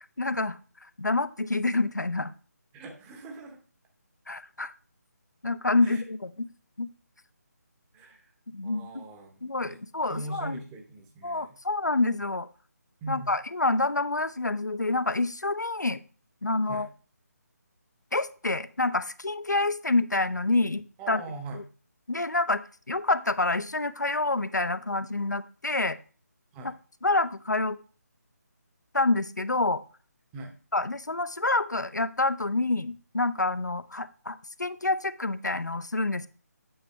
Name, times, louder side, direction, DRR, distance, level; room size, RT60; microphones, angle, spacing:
voice 1, 0.2-0.6 1.0-2.3 4.3-4.7 5.4-6.5 6.8-6.9 8.5-9.0 9.4-10.6 11.2-12.5 13.1-16.0 16.4-16.9 18.1-21.2 21.5-21.6 22.1-26.0 27.0-27.8 28.9-29.8 30.7-36.3, left 2 dB, 80° left, 13 dB, 0.6 m, -27 dB
voice 2, 2.7-3.6 5.8-6.0 7.9-8.3 8.6-9.8 10.1-11.6 13.0-13.4 16.7-16.9 21.0-21.6 26.5-26.7 30.3-30.5, right 2 dB, 10° right, 4 dB, 0.8 m, -40 dB
8.9 x 5.8 x 3.3 m, 0.38 s
figure-of-eight pair, 155°, 9 cm